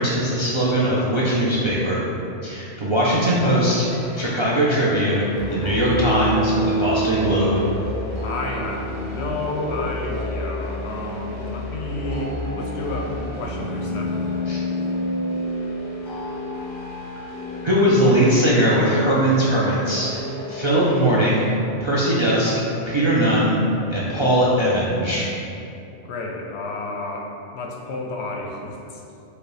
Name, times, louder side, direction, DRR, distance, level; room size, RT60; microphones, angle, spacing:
voice 1, 0.0-2.0 2.4-3.9 4.1-5.2 5.5-7.6 14.5-14.6 17.6-20.2 20.5-21.5 21.8-23.6 23.9-25.3, right 1 dB, 40° right, -8 dB, 0.4 m, -20 dB
sound 1, 3.4-21.5, equal, 30° left, 0.6 m, -29 dB
voice 2, 8.2-14.2 26.0-29.0, left 2 dB, 70° left, 1 dB, 0.8 m, -31 dB
4.8 x 2.3 x 4.8 m, 2.8 s
omnidirectional pair, 1.2 m